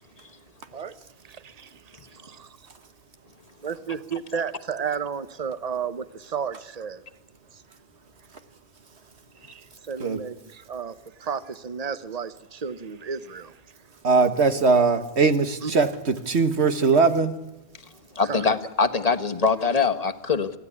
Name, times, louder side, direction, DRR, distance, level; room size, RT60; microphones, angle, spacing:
voice 1, 1.2-2.6 3.6-7.0 7.5-7.6 9.4-13.6 15.6-15.7 18.2-18.4, right 6 dB, 35° right, 14 dB, 1.0 m, -33 dB
voice 2, 14.0-17.4, right 4 dB, 65° right, 9 dB, 1.8 m, -20 dB
voice 3, 18.1-20.5, left 5 dB, 35° left, 8 dB, 1.3 m, -23 dB
27.5 x 13.5 x 9.8 m, 1.0 s
omnidirectional pair, 1.2 m